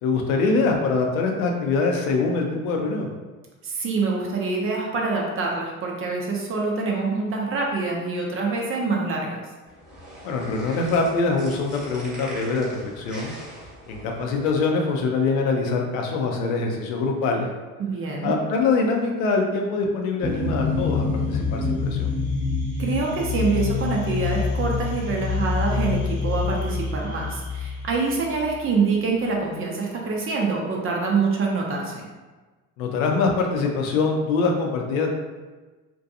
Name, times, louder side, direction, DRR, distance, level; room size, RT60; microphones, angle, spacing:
voice 1, 0.0-3.1 10.2-13.3 13.9-17.5 18.2-22.1 32.8-35.1, left 4 dB, 70° left, 1 dB, 0.6 m, -24 dB
voice 2, 3.6-9.4 17.8-18.4 22.8-32.1, right 4 dB, 30° right, -1 dB, 0.6 m, -25 dB
sound 1, 9.7-14.7, right 1 dB, ahead, 1.1 m, -42 dB
sound 2, 20.2-28.8, left 4 dB, 35° left, 1.0 m, -26 dB
2.6 x 2.2 x 2.6 m, 1.3 s
hypercardioid pair, 70°, 42 cm